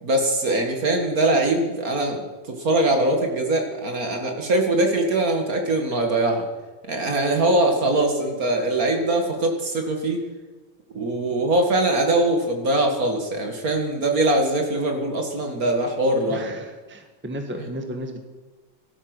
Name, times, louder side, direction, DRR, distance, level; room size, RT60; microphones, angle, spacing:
voice 1, 0.0-2.2 2.5-6.5 6.9-10.2 10.9-16.4, right 1 dB, 55° right, 3 dB, 2.4 m, -22 dB
voice 2, 16.3-18.2, equal, 5° right, 4 dB, 1.4 m, -34 dB
17.5 x 12.5 x 6.2 m, 1.3 s
omnidirectional pair, 1.9 m